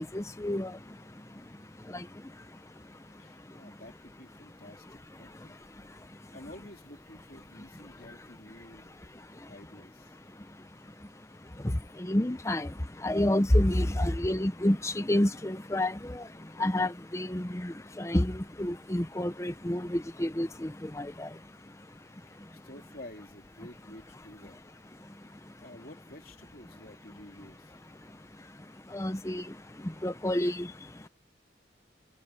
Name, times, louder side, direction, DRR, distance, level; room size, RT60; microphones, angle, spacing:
voice 1, 0.0-3.8 4.9-6.4 9.1-9.5 10.3-22.7 25.0-25.6 28.0-31.1, left 1 dB, 15° left, 0.7 m, -32 dB
voice 2, 3.2-5.6 6.0-6.1 6.3-9.0 9.3-10.2 22.3-24.6 25.2-25.3 25.6-27.8, left 1 dB, 50° left, 3.9 m, -51 dB
head